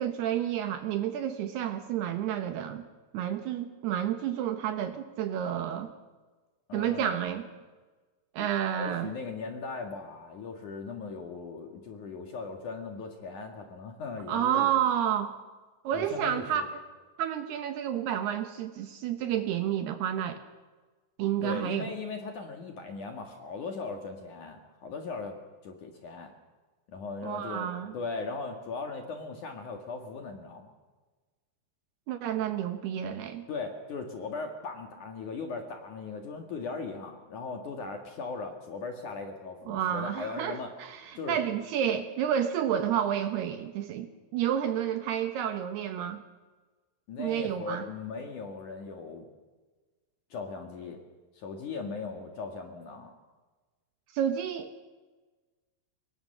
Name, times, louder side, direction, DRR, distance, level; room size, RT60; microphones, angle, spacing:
voice 1, 0.0-2.8 3.1-5.9 6.7-7.4 8.3-9.1 14.3-15.3 15.8-16.6 17.2-20.4 21.2-21.8 27.2-27.9 32.1-33.4 39.7-46.2 47.2-47.8 54.1-54.8, right 10 dB, 70° right, 8 dB, 2.7 m, -30 dB
voice 2, 6.7-7.4 8.4-14.7 15.9-16.7 21.4-25.4 25.6-26.3 26.9-30.7 33.5-40.7 41.2-41.4 47.1-49.3 50.3-51.0 51.3-53.1, left 4 dB, 55° left, 4 dB, 2.6 m, -38 dB
24.5 x 21.5 x 6.7 m, 1.3 s
omnidirectional pair, 5.5 m